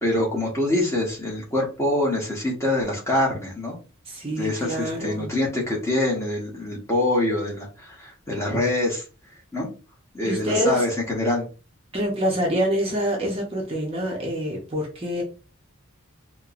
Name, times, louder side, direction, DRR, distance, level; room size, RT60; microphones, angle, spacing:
voice 1, 0.0-3.8 4.4-9.0 9.5-9.7 10.1-11.5, left 1 dB, 15° left, -3 dB, 1.0 m, -25 dB
voice 2, 4.1-5.3 10.2-10.8 11.9-15.2, equal, 25° right, -1 dB, 0.7 m, -26 dB
4.4 x 2.2 x 2.5 m, 0.34 s
head